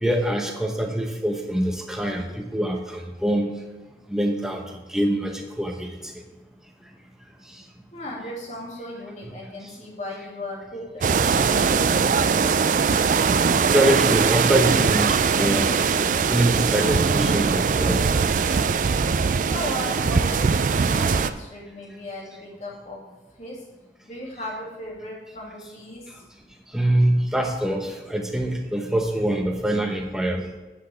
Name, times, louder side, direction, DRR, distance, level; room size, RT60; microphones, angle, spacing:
voice 1, 0.0-3.5 4.1-4.6 4.9-5.9 13.0-13.1 13.7-15.8 16.3-18.0 26.7-30.5, right 1 dB, 5° right, 2 dB, 0.9 m, -24 dB
voice 2, 7.9-12.6 19.4-23.0 23.4-23.6 24.0-26.1, left 1 dB, 40° left, -4 dB, 2.4 m, -36 dB
sound 1, 11.0-21.3, right 5 dB, 45° right, 0.3 m, -21 dB
10.0 x 7.9 x 3.4 m, 1.2 s
head